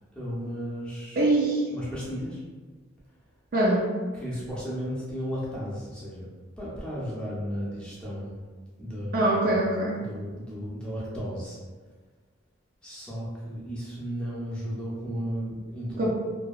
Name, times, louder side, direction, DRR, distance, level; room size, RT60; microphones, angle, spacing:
voice 1, 0.1-1.2 1.7-2.4 4.1-6.3 6.6-8.3 8.8-9.6 10.0-11.6 12.8-16.1, equal, 5° left, -8 dB, 0.6 m, -34 dB
voice 2, 1.2-1.6 3.5-3.9 9.1-10.0 16.0-16.1, right 1 dB, 45° right, -3 dB, 0.4 m, -23 dB
2.7 x 2.2 x 2.3 m, 1.4 s
head